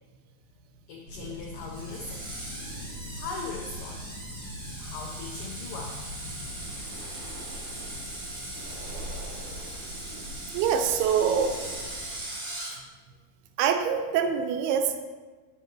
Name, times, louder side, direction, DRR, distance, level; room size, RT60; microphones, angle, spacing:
voice 1, 0.9-2.3 3.2-4.0 4.8-6.0, left 4 dB, 85° left, 1 dB, 1.9 m, -39 dB
sound 1, 1.1-6.7, left 1 dB, 60° left, 1.4 m, -41 dB
Screech, 1.7-12.8, right 1 dB, 30° right, 1.6 m, -40 dB
Breathing, 6.1-12.2, equal, 65° right, 1.4 m, -42 dB
voice 2, 10.5-11.5 13.6-15.0, right 7 dB, 80° right, 6 dB, 2.5 m, -25 dB
7.5 x 7.1 x 3.0 m, 1.4 s
omnidirectional pair, 4.6 m